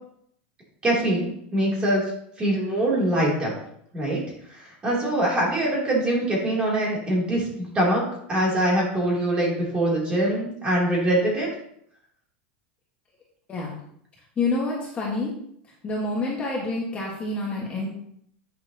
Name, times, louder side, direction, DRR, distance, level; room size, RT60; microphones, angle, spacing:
voice 1, 0.8-2.0 2.4-3.5 3.9-4.2 4.5-8.0 8.3-11.5, right 1 dB, 15° right, -4 dB, 3.0 m, -23 dB
voice 2, 14.4-15.3 15.8-17.9, left 2 dB, 20° left, -3 dB, 1.5 m, -27 dB
9.7 x 6.7 x 2.9 m, 0.69 s
supercardioid pair, 155°, 6 cm